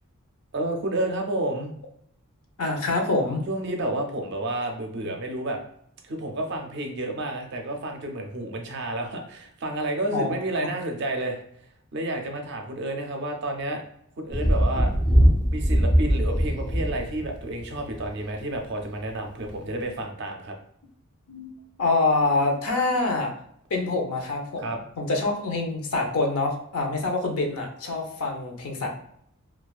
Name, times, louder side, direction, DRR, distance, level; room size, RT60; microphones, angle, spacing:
voice 1, 0.5-1.7 3.5-5.6 6.0-11.4 11.9-13.8 14.2-14.9 15.5-20.6 24.6-24.8, right 1 dB, 50° right, 3 dB, 0.4 m, -30 dB
voice 2, 2.6-3.4 5.0-5.2 10.1-10.3 15.7-15.9 21.3-21.5 21.8-23.3 23.7-28.9, left 3 dB, 80° left, 2 dB, 0.5 m, -26 dB
Thunder, 14.3-18.2 19.5-19.6, equal, 15° left, 0.4 m, -21 dB
2.4 x 2.3 x 2.2 m, 0.69 s
head